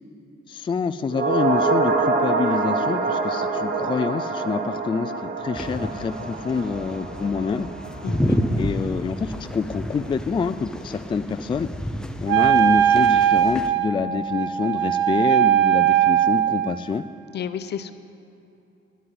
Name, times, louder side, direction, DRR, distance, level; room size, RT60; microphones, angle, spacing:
voice 1, 0.5-7.7 8.6-11.7 12.2-17.0, left 5 dB, 25° left, 11 dB, 0.4 m, -26 dB
sound 1, 1.1-9.6 9.9-10.0, right 4 dB, 45° right, 1.5 m, -26 dB
sound 2, 5.6-13.7, equal, 5° left, 0.7 m, -30 dB
voice 2, 8.0-8.4 17.3-17.9, left 8 dB, 55° left, 11 dB, 0.7 m, -31 dB
Wind instrument woodwind instrument, 12.3-16.8, right 11 dB, 75° right, 0.7 m, -19 dB
9.7 x 9.4 x 9.4 m, 2.6 s
cardioid pair, 90°, 20 cm